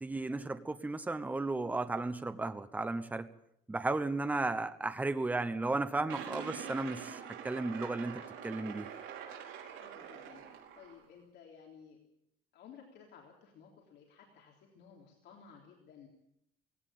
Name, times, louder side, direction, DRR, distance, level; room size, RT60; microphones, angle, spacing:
voice 1, 0.0-3.3 3.7-8.9, right 2 dB, 10° right, 11 dB, 0.9 m, -34 dB
sound 1, 6.1-11.0, right 8 dB, 75° right, 4.8 m, -45 dB
voice 2, 6.2-6.6 9.7-12.0 12.5-16.1, left 7 dB, 60° left, 0 dB, 3.7 m, -56 dB
18.5 x 17.0 x 8.7 m, 0.75 s
cardioid pair, 170°, 20 cm